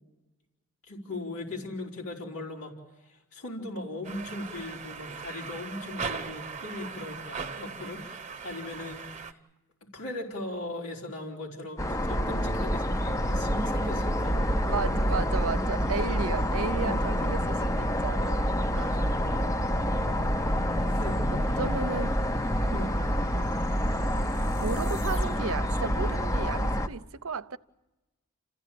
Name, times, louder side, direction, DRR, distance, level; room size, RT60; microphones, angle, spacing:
voice 1, 0.8-2.7 3.0-9.4 9.8-16.0 16.8-17.2 18.7-19.1 20.9-21.2 22.7-23.0, left 1 dB, 90° left, 4.5 m, -39 dB
sound 1, 4.0-9.3, right 5 dB, 35° right, 1.0 m, -39 dB
sound 2, 11.8-26.9, equal, 15° left, 0.7 m, -27 dB
voice 2, 14.6-18.5 18.7-19.2 21.5-22.1 22.7-23.0 24.4-27.6, right 5 dB, 70° right, 0.7 m, -34 dB
sound 3, 21.5-25.7, left 5 dB, 70° left, 6.5 m, -52 dB
29.0 x 15.5 x 8.5 m
head